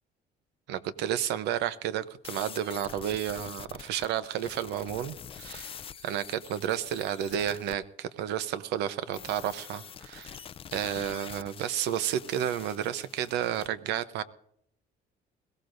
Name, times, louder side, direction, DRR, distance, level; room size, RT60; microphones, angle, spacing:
voice 1, 0.7-10.4 10.7-14.2, right 10 dB, 85° right, 13 dB, 0.8 m, -31 dB
sound 1, 2.2-7.8 9.1-13.7, left 8 dB, 35° left, 0.4 m, -45 dB
21.5 x 16.5 x 2.6 m, 0.71 s
cardioid pair, 110°, 17 cm